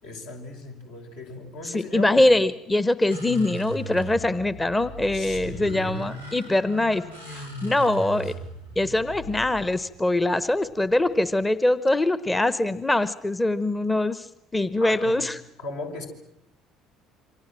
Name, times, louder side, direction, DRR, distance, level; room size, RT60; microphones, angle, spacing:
voice 1, 0.0-2.3 5.1-6.1 7.6-8.3 14.8-15.3 15.6-16.1, left 3 dB, 70° left, 1 dB, 5.8 m, -38 dB
voice 2, 1.6-8.3 8.8-14.3 14.5-15.4, left 1 dB, 15° left, 15 dB, 1.0 m, -23 dB
sound 1, 3.1-11.4, right 2 dB, 90° left, 3.1 m, -38 dB
28.0 x 25.0 x 7.6 m, 0.78 s
figure-of-eight pair, 55°, 0 cm